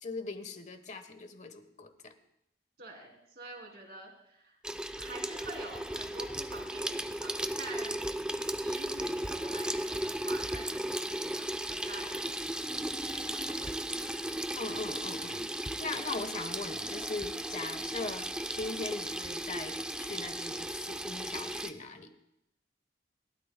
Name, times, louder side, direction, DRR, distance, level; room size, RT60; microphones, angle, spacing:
voice 1, 0.0-2.1 14.6-15.5 15.8-22.1, left 3 dB, 40° left, 8 dB, 1.1 m, -40 dB
voice 2, 2.8-4.6 5.0-8.0 8.6-14.0, right 2 dB, 60° right, 1 dB, 3.0 m, -47 dB
Water tap faucet / Sink (filling or washing), 4.6-21.7, right 1 dB, 5° right, 0.4 m, -36 dB
30.0 x 12.5 x 2.2 m, 0.81 s
head